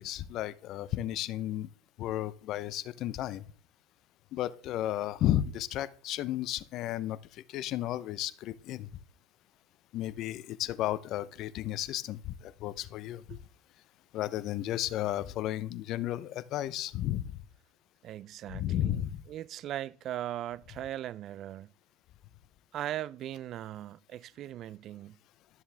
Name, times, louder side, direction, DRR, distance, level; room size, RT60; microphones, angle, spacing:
voice 1, 0.0-1.7 2.0-3.4 4.3-7.2 7.5-8.9 9.9-12.3 12.6-13.2 14.1-17.3 18.5-19.2, left 13 dB, 55° left, 0.7 m, -33 dB
voice 2, 18.0-19.0 19.3-21.7 22.7-25.2, right 12 dB, 50° right, 0.4 m, -39 dB
12.5 x 7.2 x 3.4 m
supercardioid pair, 100°, 0 cm